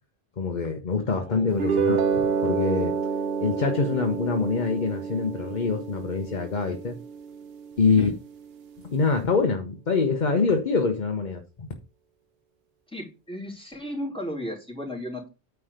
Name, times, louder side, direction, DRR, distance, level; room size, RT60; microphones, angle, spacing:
voice 1, 0.4-3.0 3.4-7.0 7.8-8.1 8.8-11.7, left 4 dB, 45° left, 1.0 m, -25 dB
voice 2, 1.1-1.8 8.0-8.1 12.9-15.3, left 1 dB, 5° left, 3.0 m, -35 dB
sound 1, 1.5-8.0, right 6 dB, 70° right, 0.9 m, -29 dB
Piano, 2.0-8.1, right 6 dB, 50° right, 0.6 m, -36 dB
9.4 x 3.5 x 6.5 m
omnidirectional pair, 1.1 m